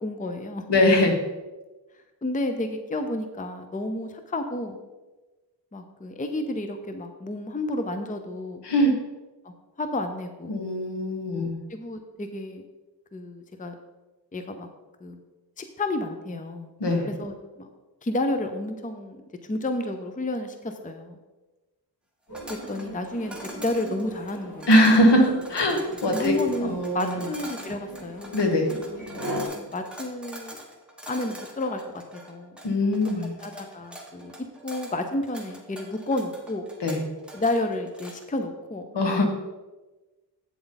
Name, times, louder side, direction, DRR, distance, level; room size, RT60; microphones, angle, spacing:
voice 1, 0.0-0.6 2.2-4.8 5.7-8.6 9.4-10.6 11.7-12.6 13.1-13.7 14.3-14.7 15.0-15.2 15.6-16.7 17.0-17.7 18.0-21.2 22.7-24.7 26.1-28.4 29.5-30.6 31.1-32.6 32.8-32.9 33.4-34.3 34.6-36.7 37.3-38.9, left 1 dB, 20° left, 7 dB, 0.7 m, -31 dB
voice 2, 0.7-1.2 8.6-9.0 10.5-11.6 16.8-17.1 24.7-27.3 28.3-28.7 32.6-33.3 36.8-37.0 38.9-39.3, left 1 dB, 70° left, 3 dB, 1.7 m, -21 dB
sound 1, 22.3-29.5, equal, 40° left, 3.3 m, -39 dB
sound 2, 22.3-38.3, right 1 dB, ahead, 1.6 m, -44 dB
8.5 x 7.7 x 4.0 m, 1.2 s
wide cardioid pair, 95°, 44 cm